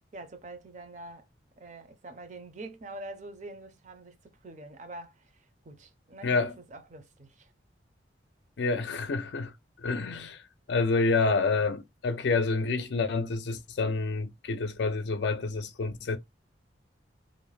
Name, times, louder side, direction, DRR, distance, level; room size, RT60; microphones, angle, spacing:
voice 1, 0.1-1.3 1.6-4.2 4.4-7.5, right 2 dB, 40° right, 0.5 m, -45 dB
voice 2, 6.2-6.5 8.6-9.5 9.8-10.4 10.7-16.2, left 3 dB, 70° left, 0.4 m, -28 dB
2.5 x 2.1 x 3.1 m
head